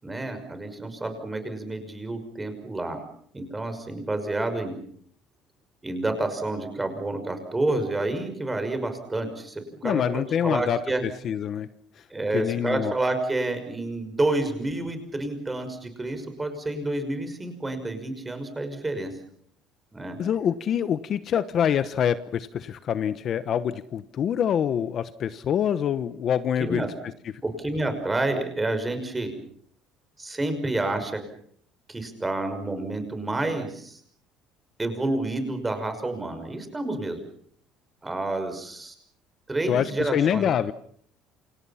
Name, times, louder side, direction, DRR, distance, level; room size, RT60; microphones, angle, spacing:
voice 1, 0.0-3.0 3.3-4.8 5.8-11.0 12.1-19.1 19.9-20.2 26.6-26.9 27.4-29.3 30.2-31.2 31.9-34.0 34.8-37.2 38.0-38.9 39.5-40.5, right 2 dB, 10° right, 8 dB, 5.8 m, -29 dB
voice 2, 9.8-11.7 12.0-12.1 12.3-12.9 20.2-26.8 39.7-40.7, left 9 dB, 40° left, 13 dB, 1.1 m, -25 dB
29.0 x 27.0 x 5.8 m, 0.62 s
cardioid pair, 145°, 0 cm